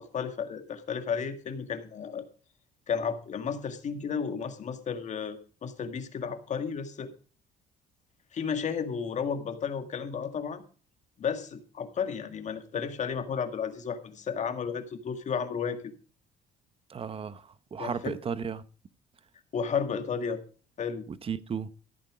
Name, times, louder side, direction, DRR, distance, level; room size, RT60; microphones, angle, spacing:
voice 1, 0.0-2.2 2.9-7.1 8.3-10.6 11.2-15.9 17.8-18.2 19.5-20.4 20.8-21.1, left 6 dB, 45° left, 1.9 m, -33 dB
voice 2, 16.9-18.6 21.1-21.7, right 6 dB, 35° right, 0.9 m, -34 dB
14.5 x 8.8 x 5.0 m
cardioid pair, 110°, 17 cm